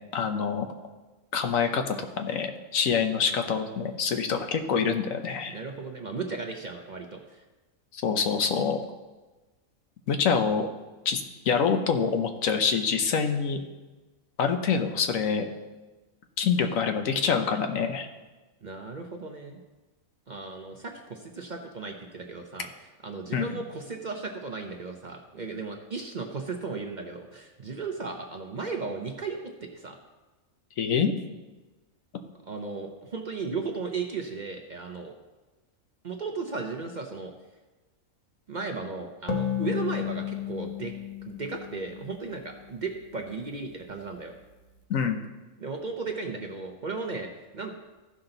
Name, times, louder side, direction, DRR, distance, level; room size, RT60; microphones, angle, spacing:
voice 1, 0.1-0.7 1.3-5.5 7.9-8.8 10.1-10.7 11.0-13.6 14.4-15.5 16.4-18.1 23.3-23.5 30.8-31.1 44.9-45.2, left 6 dB, 80° left, 6 dB, 1.2 m, -26 dB
voice 2, 5.5-7.4 18.6-19.6 20.3-22.7 23.0-30.0 32.5-35.1 36.0-37.3 38.5-40.9 41.2-44.3 45.6-47.7, right 4 dB, 40° right, 3 dB, 0.7 m, -35 dB
sound 1, 39.3-42.8, left 9 dB, 35° left, 0.7 m, -33 dB
14.5 x 5.7 x 3.9 m, 1.2 s
omnidirectional pair, 1.4 m